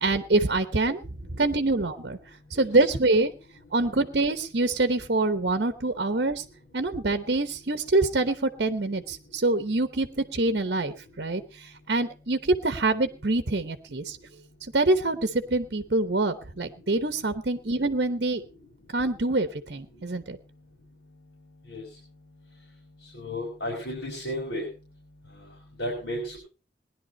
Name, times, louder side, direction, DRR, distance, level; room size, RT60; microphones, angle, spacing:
voice 1, 0.0-1.0 1.3-2.2 2.5-3.3 3.7-6.4 6.7-14.2 14.7-18.4 18.9-20.4, right 2 dB, 60° right, 10 dB, 0.9 m, -25 dB
voice 2, 23.1-24.6 25.8-26.4, left 1 dB, 85° left, -2 dB, 5.3 m, -32 dB
19.5 x 11.0 x 4.2 m, 0.34 s
head